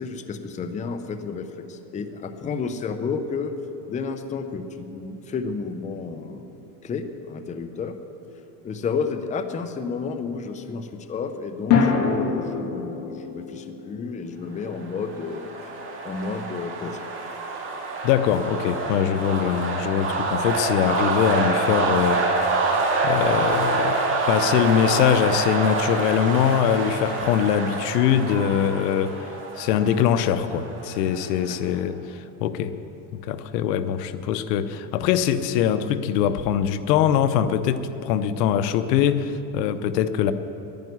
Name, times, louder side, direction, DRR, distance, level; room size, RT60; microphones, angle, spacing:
voice 1, 0.0-3.5 3.9-8.0 8.6-15.5 16.0-17.0 31.5-31.9, left 5 dB, 15° left, 8 dB, 0.6 m, -31 dB
sound 1, 6.3-6.8 11.7-16.0, left 5 dB, 50° left, 2.4 m, -27 dB
sound 2, 14.8-31.5, right 3 dB, 25° right, 2.1 m, -26 dB
voice 2, 18.0-22.3 23.0-24.0 24.3-32.7 33.1-40.3, left 9 dB, 90° left, 12 dB, 0.9 m, -22 dB
11.0 x 10.5 x 9.4 m, 2.9 s
supercardioid pair, 140°, 47 cm